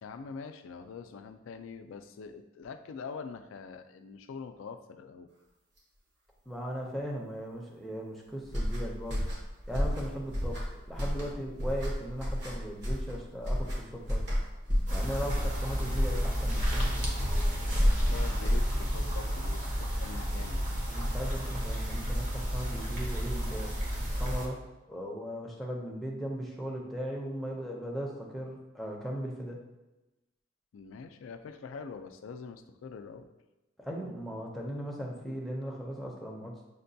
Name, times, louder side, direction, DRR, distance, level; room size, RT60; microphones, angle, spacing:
voice 1, 0.0-5.3 17.6-20.7 30.7-33.3, left 5 dB, 85° left, 8 dB, 0.3 m, -44 dB
voice 2, 6.5-9.3 9.7-14.3 14.9-16.9 20.9-23.8 24.1-24.6 24.9-29.6 33.8-36.6, equal, ahead, -3 dB, 0.5 m, -38 dB
sound 1, 8.5-19.1, equal, 60° right, 1.0 m, -30 dB
sound 2, 14.8-24.5, equal, 40° right, 0.7 m, -32 dB
6.4 x 2.2 x 2.6 m, 1.0 s
head